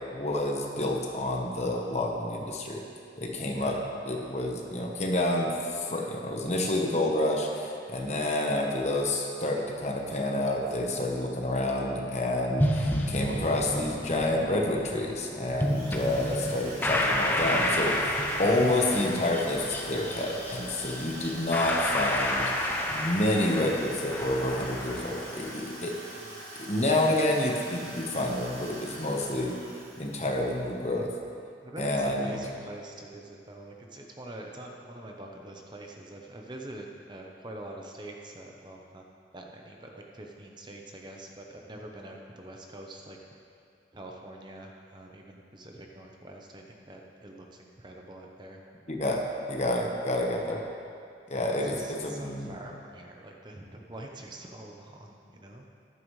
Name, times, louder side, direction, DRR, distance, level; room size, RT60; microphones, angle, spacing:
voice 1, 0.1-2.8 3.2-3.8 4.1-26.0 26.6-29.6 30.0-31.1 31.8-32.4 48.9-49.2 49.5-50.6 51.3-52.5, left 1 dB, 40° left, 1 dB, 1.1 m, -28 dB
sound 1, 12.6-25.5, left 1 dB, 10° left, 0.6 m, -31 dB
Drill, 15.6-30.8, right 1 dB, 60° right, 3.2 m, -44 dB
voice 2, 31.6-39.0 39.3-43.2 43.9-48.6 51.4-55.7, right 1 dB, 25° right, 1 dB, 0.8 m, -45 dB
13.5 x 11.0 x 3.2 m, 2.4 s
head